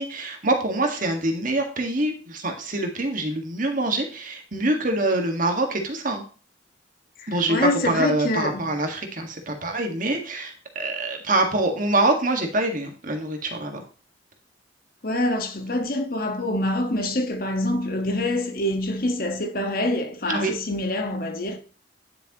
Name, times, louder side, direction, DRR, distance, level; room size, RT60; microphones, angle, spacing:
voice 1, 0.0-6.2 7.3-13.8 20.3-20.5, right 2 dB, 45° right, 1.8 m, -25 dB
voice 2, 7.3-8.7 15.0-21.6, left 1 dB, 50° left, 1.5 m, -25 dB
10.0 x 6.8 x 3.0 m
head